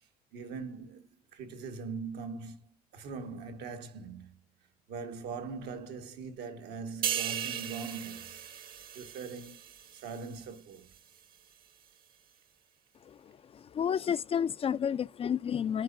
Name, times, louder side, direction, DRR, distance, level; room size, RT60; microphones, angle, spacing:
voice 1, 0.3-4.4 4.9-8.4 8.9-10.9, right 5 dB, 75° right, 1.6 m, -41 dB
sound 1, 7.0-10.6 10.9-11.2, right 10 dB, 60° right, 1.4 m, -37 dB
voice 2, 13.0-15.8, left 8 dB, 35° left, 0.4 m, -31 dB
11.0 x 4.5 x 2.5 m
cardioid pair, 110°, 17 cm